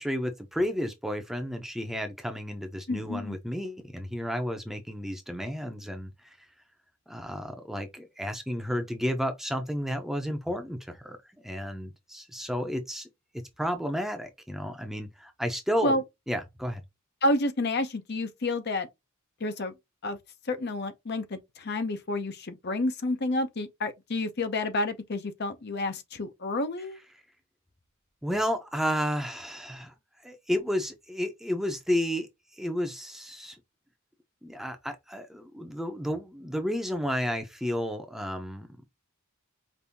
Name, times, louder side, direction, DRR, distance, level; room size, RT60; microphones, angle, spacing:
voice 1, 0.0-6.4 7.1-11.2 11.4-13.1 13.6-16.0 16.3-16.8 28.2-29.9 30.2-32.3 32.6-33.6 34.4-38.8, equal, ahead, 0.7 m, -32 dB
voice 2, 2.9-3.4 15.8-16.0 17.2-18.9 19.4-19.7 20.0-20.2 20.5-27.0, left 2 dB, 50° left, 0.7 m, -29 dB
5.3 x 2.7 x 2.8 m
head